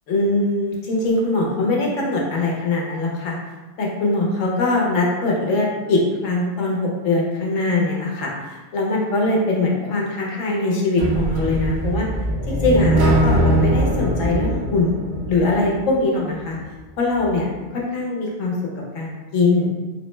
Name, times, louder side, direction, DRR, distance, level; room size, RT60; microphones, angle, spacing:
voice 1, 0.1-3.4 3.8-12.1 12.5-16.6 17.0-17.5 17.7-18.5 18.9-19.7, left 2 dB, 75° left, -2 dB, 1.1 m, -22 dB
sound 1, 11.0-15.9, right 1 dB, 65° right, 0.8 m, -21 dB
3.4 x 2.1 x 3.1 m, 1.2 s
omnidirectional pair, 1.3 m